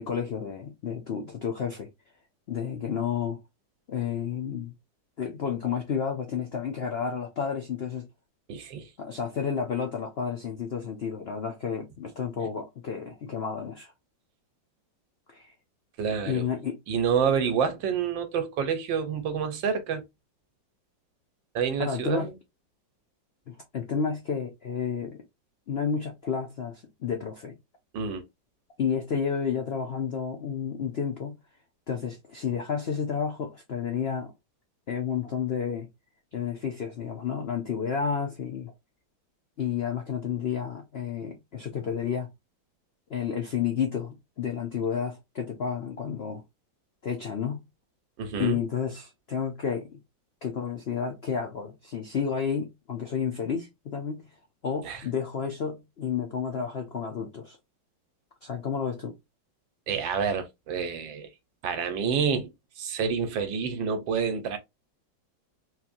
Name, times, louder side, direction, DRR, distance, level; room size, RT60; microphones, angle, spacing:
voice 1, 0.0-1.9 2.5-3.4 3.9-4.7 5.2-8.1 9.0-13.9 15.3-15.5 16.3-16.8 21.8-22.3 23.5-25.2 25.7-27.6 28.8-31.4 31.9-34.3 34.9-35.9 36.3-38.7 39.6-42.3 43.1-46.4 47.0-47.6 48.4-50.0 50.4-54.3 54.6-57.6 58.4-59.1, left 7 dB, 85° left, 0.5 m, -31 dB
voice 2, 8.5-8.9 16.0-16.4 16.9-20.0 21.5-22.3 27.9-28.2 48.2-48.6 54.8-55.0 59.9-61.3 61.6-62.5 62.8-64.6, right 6 dB, 80° right, 1.6 m, -28 dB
4.3 x 2.8 x 2.5 m
omnidirectional pair, 2.0 m